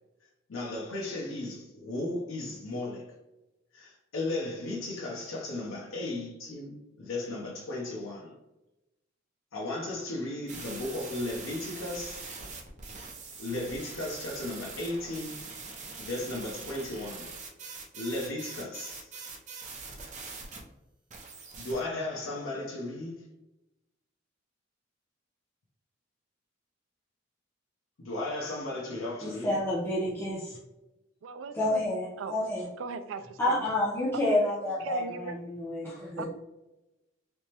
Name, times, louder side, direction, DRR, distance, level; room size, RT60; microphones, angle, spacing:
voice 1, 0.5-3.1 3.7-8.3 9.5-12.3 13.4-15.4 16.0-17.3 17.9-19.1 21.6-23.2 28.0-29.5, left 2 dB, 85° left, 0.7 m, -35 dB
sound 1, 10.5-20.6 21.1-21.8, right 4 dB, 40° right, 0.7 m, -43 dB
voice 2, 29.2-30.6 31.5-32.7 33.4-36.2, left 1 dB, 10° left, 0.6 m, -29 dB
voice 3, 31.2-31.8 32.2-32.4 32.8-33.6 34.1-34.4 34.8-35.3 36.2-36.3, right 5 dB, 70° right, 0.3 m, -38 dB
3.4 x 3.0 x 2.9 m
head